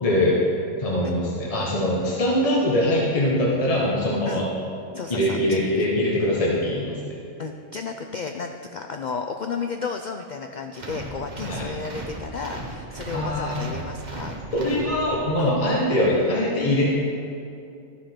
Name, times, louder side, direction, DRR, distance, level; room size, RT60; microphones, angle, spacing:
voice 1, 0.0-0.4 0.8-4.5 5.1-7.1 11.5-11.7 13.1-13.6 14.5-16.8, left 1 dB, 30° left, -5 dB, 1.2 m, -22 dB
voice 2, 4.9-5.6 7.4-14.4 15.4-15.6, left 5 dB, 90° left, 5 dB, 0.4 m, -33 dB
sound 1, 10.7-15.5, right 2 dB, 40° right, 1.1 m, -36 dB
12.5 x 5.0 x 5.9 m, 2.6 s
omnidirectional pair, 1.3 m